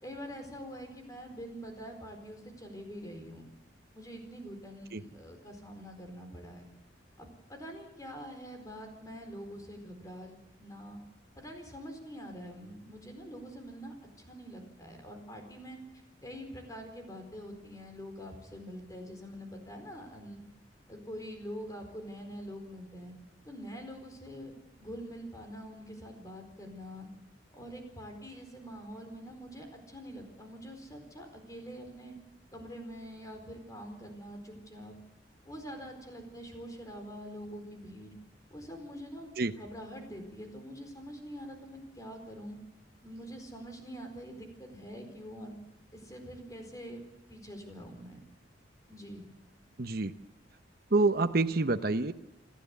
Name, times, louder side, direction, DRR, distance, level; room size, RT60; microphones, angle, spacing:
voice 1, 0.0-3.5 3.9-6.7 7.2-11.0 11.3-15.8 16.2-20.4 20.9-23.1 23.4-24.5 24.8-27.1 27.5-32.1 32.5-34.9 35.4-38.1 38.5-42.6 43.0-45.5 45.9-47.0 47.3-48.2 48.9-49.3, equal, 20° left, 4 dB, 4.4 m, -45 dB
voice 2, 49.8-50.1 50.9-52.1, right 3 dB, 55° right, 8 dB, 0.9 m, -27 dB
28.5 x 12.5 x 8.4 m, 0.93 s
head